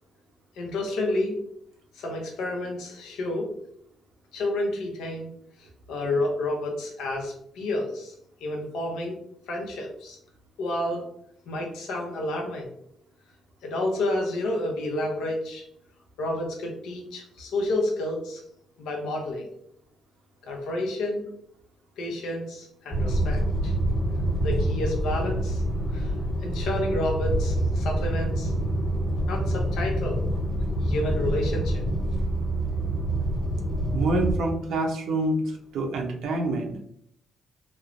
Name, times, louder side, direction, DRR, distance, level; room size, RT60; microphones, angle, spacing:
voice 1, 0.6-1.4 1.9-3.5 4.3-5.3 5.9-8.1 8.4-9.2 9.5-10.2 10.6-11.0 11.5-12.7 13.6-15.6 16.2-18.4 18.8-19.5 20.4-21.2 22.0-23.7 24.4-25.6 25.9-26.1 26.4-28.5 29.2-30.2 30.8-31.8, left 1 dB, 85° left, 0 dB, 0.6 m, -30 dB
sound 1, 22.9-34.4, right 1 dB, 20° left, 1.1 m, -26 dB
voice 2, 33.9-35.4 35.7-36.7, right 2 dB, 80° right, 2 dB, 0.5 m, -26 dB
3.0 x 2.0 x 2.4 m, 0.69 s
cardioid pair, 90°, 0 cm